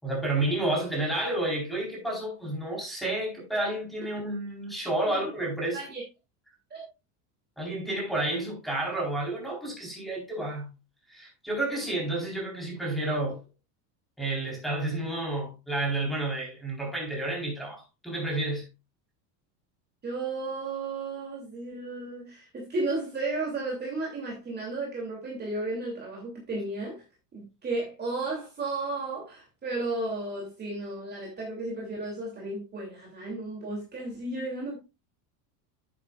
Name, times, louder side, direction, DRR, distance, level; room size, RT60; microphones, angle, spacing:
voice 1, 0.0-5.8 7.6-10.7 11.1-13.4 14.2-18.7, right 2 dB, ahead, 4.2 m, -30 dB
voice 2, 20.0-27.0 27.3-34.8, right 2 dB, 20° right, 2.8 m, -34 dB
10.5 x 8.5 x 2.4 m
supercardioid pair, 150°, 47 cm